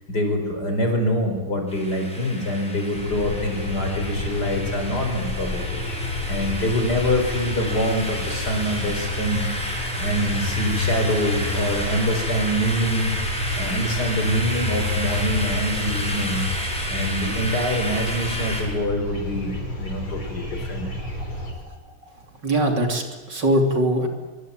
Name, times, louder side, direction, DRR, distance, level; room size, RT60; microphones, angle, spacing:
voice 1, 0.0-5.8 6.3-9.5 10.0-13.2 13.6-16.4 16.9-20.9, equal, 45° left, 4 dB, 5.8 m, -25 dB
sound 1, 1.7-18.6, equal, 5° left, 6.3 m, -31 dB
sound 2, 2.9-21.5, left 2 dB, 65° left, 6.3 m, -30 dB
voice 2, 21.3-21.6 22.4-24.1, right 1 dB, 50° right, 4 dB, 3.6 m, -22 dB
25.0 x 25.0 x 9.0 m, 1.3 s
omnidirectional pair, 2.4 m